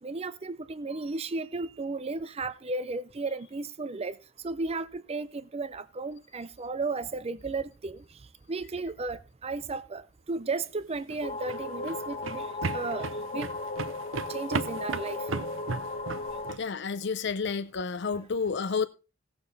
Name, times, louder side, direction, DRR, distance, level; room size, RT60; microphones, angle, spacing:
voice 1, 0.0-4.1 4.4-8.0 8.5-12.5 12.7-13.1 13.3-13.5 14.3-15.2, right 3 dB, 30° right, 0.5 m, -34 dB
sound 1, 10.9-16.6, right 4 dB, 85° right, 0.7 m, -35 dB
sound 2, 11.2-16.5, left 2 dB, 35° left, 1.1 m, -36 dB
voice 2, 16.6-18.9, left 5 dB, 60° left, 0.6 m, -30 dB
17.0 x 7.0 x 4.1 m
head